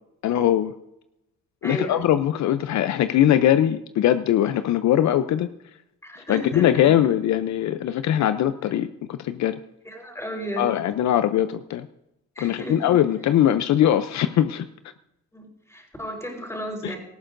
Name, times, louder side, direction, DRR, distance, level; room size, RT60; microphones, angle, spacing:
voice 1, 0.2-0.7 1.6-5.5 6.3-9.6 10.6-11.9 12.4-14.7 16.8-16.9, left 11 dB, 65° left, 11 dB, 0.6 m, -21 dB
voice 2, 1.6-2.1 6.0-6.9 9.8-10.7 12.4-13.0 15.3-17.0, equal, 10° left, 1 dB, 4.2 m, -33 dB
18.0 x 14.0 x 2.6 m, 0.88 s
cardioid pair, 90°, 30 cm